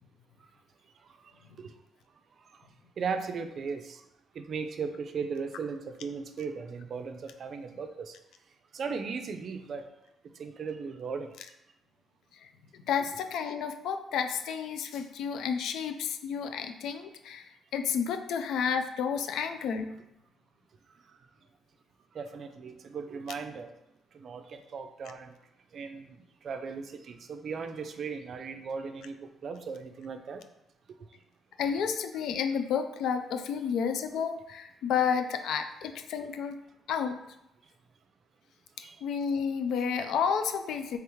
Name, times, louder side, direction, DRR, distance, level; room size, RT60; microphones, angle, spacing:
voice 1, 3.0-4.0 4.3-8.1 8.7-9.8 10.4-11.3 22.1-23.7 24.1-25.3 25.7-30.4 38.8-39.0, right 5 dB, 55° right, 7 dB, 0.4 m, -37 dB
voice 2, 12.9-19.9 31.6-36.6 36.9-37.2 38.8-41.0, left 7 dB, 80° left, 7 dB, 0.3 m, -31 dB
3.5 x 3.3 x 3.0 m, 0.85 s
cardioid pair, 90°, 0 cm